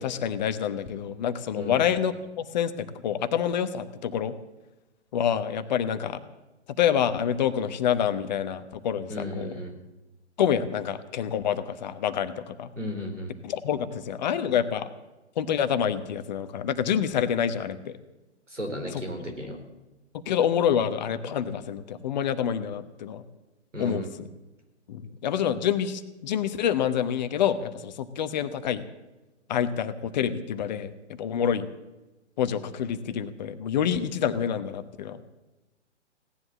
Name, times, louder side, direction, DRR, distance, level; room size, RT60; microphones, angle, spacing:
voice 1, 0.0-4.3 5.1-6.2 6.8-9.6 10.4-12.7 13.4-14.9 15.4-18.0 18.9-19.2 20.3-23.2 23.8-24.3 24.9-28.8 29.5-30.9 31.2-31.7 32.4-35.2, left 8 dB, 40° left, 11 dB, 1.1 m, -27 dB
voice 2, 9.1-9.7 12.8-13.3 18.5-19.6 23.7-24.1, equal, 85° right, 3 dB, 4.1 m, -34 dB
17.5 x 11.0 x 7.3 m, 1.1 s
figure-of-eight pair, 120°, 36 cm